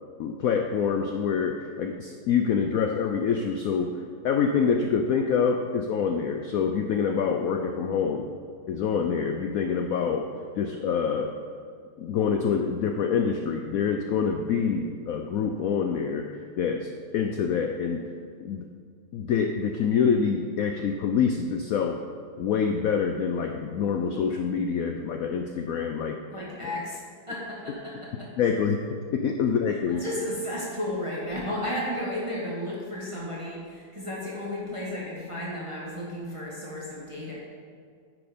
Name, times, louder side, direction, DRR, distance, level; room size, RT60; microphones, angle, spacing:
voice 1, 0.2-8.3 8.7-10.3 10.6-11.3 12.0-18.0 18.4-18.7 19.1-22.0 22.4-26.2 26.6-26.7 28.4-28.8 29.1-30.0, left 6 dB, 75° left, 4 dB, 0.8 m, -26 dB
voice 2, 26.3-27.0 27.3-28.3 29.7-37.3, left 1 dB, 15° right, -6 dB, 1.6 m, -33 dB
9.4 x 6.2 x 5.1 m, 2.1 s
omnidirectional pair, 2.0 m